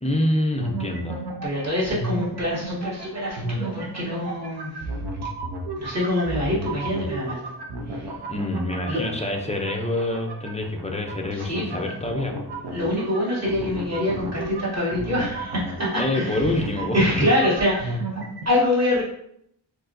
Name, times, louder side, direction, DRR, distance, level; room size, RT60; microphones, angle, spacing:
voice 1, 0.0-1.2 8.3-12.4 16.0-17.3, left 1 dB, 15° left, 2 dB, 0.5 m, -26 dB
sound 1, 0.6-18.5, right 2 dB, 60° right, 0.7 m, -33 dB
voice 2, 1.4-4.9 5.8-7.4 7.9-8.1 8.9-9.0 11.3-11.9 12.7-16.4 16.8-18.0 18.5-19.0, left 1 dB, 35° right, -7 dB, 1.9 m, -25 dB
4.7 x 4.1 x 2.6 m, 0.71 s
wide cardioid pair, 180°, 44 cm